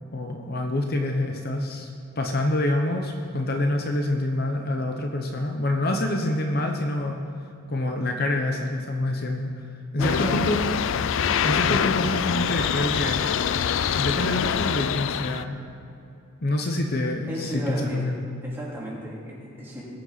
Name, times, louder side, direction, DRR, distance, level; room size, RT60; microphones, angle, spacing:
voice 1, 0.1-1.9 2.2-7.2 7.7-9.5 9.9-10.6 11.4-13.2 13.9-15.6 16.4-18.3, left 1 dB, 45° left, 3 dB, 0.8 m, -26 dB
sound 1, 10.0-15.4, left 8 dB, 65° left, 0.4 m, -25 dB
voice 2, 10.0-10.4 17.3-18.1 18.4-19.8, equal, 10° right, -6 dB, 2.6 m, -34 dB
19.5 x 7.8 x 4.1 m, 2.7 s
head